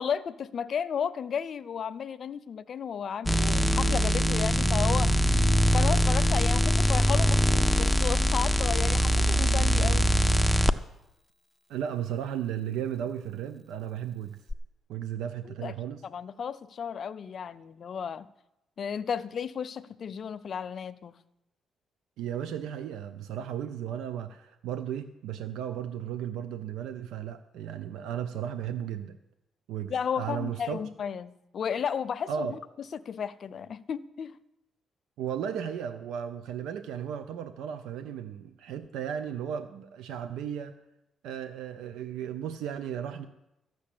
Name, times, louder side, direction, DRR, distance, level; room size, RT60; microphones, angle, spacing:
voice 1, 0.0-5.1 5.6-10.1 15.4-15.8 16.0-18.3 18.8-21.2 29.9-32.6 32.9-34.4, left 7 dB, 55° left, 0.6 m, -33 dB
sound 1, 3.3-10.7 14.5-14.6, equal, 5° left, 0.6 m, -23 dB
voice 2, 11.7-14.4 14.9-16.0 22.2-29.2 29.7-30.8 32.3-32.5 35.2-40.8 41.2-43.3, right 9 dB, 90° right, 0.6 m, -35 dB
13.5 x 6.3 x 8.5 m
cardioid pair, 90°, 0 cm